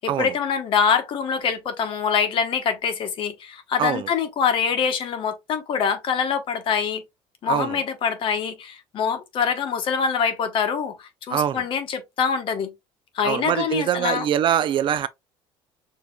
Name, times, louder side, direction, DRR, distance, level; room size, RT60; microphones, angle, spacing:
voice 1, 0.0-7.0 7.4-12.7 13.1-14.3, left 6 dB, 45° left, 1.1 m, -24 dB
voice 2, 7.5-7.8 11.3-11.6 13.2-15.1, right 10 dB, 45° right, 0.4 m, -23 dB
6.6 x 2.8 x 2.4 m
cardioid pair, 135°, 12 cm